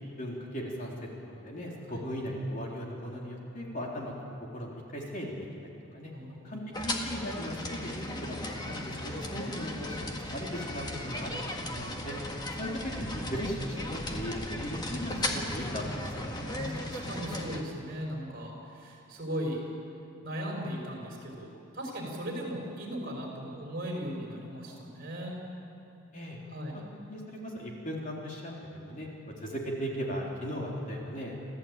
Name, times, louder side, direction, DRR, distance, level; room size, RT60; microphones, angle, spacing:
voice 1, 0.2-0.9 1.3-4.1 4.5-5.4 5.6-6.1 6.4-7.6 7.8-12.2 12.6-16.1 26.1-26.4 26.7-26.8 27.1-29.1 29.4-31.4, equal, 35° left, -2 dB, 3.7 m, -37 dB
voice 2, 6.1-6.6 9.3-9.4 16.3-19.6 20.2-25.4 26.5-26.8, equal, 45° right, -1 dB, 5.6 m, -38 dB
sound 1, 6.7-17.6, left 1 dB, 20° left, 1.7 m, -36 dB
27.5 x 15.5 x 9.0 m, 2.8 s
head